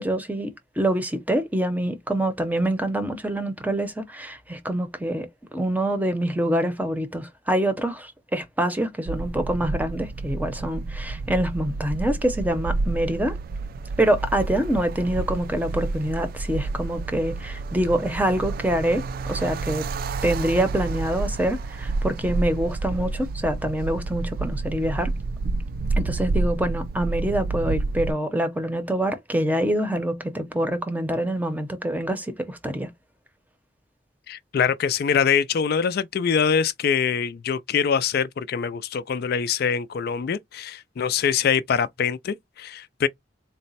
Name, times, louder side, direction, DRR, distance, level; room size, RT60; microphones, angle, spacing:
voice 1, 0.0-5.3 5.5-13.4 14.0-19.9 20.2-25.1 26.0-32.9, right 1 dB, 10° right, 0.7 m, -25 dB
sound 1, 9.1-28.1, right 3 dB, 50° right, 0.3 m, -29 dB
voice 2, 34.3-43.1, left 7 dB, 55° left, 0.4 m, -24 dB
4.0 x 2.1 x 4.0 m
head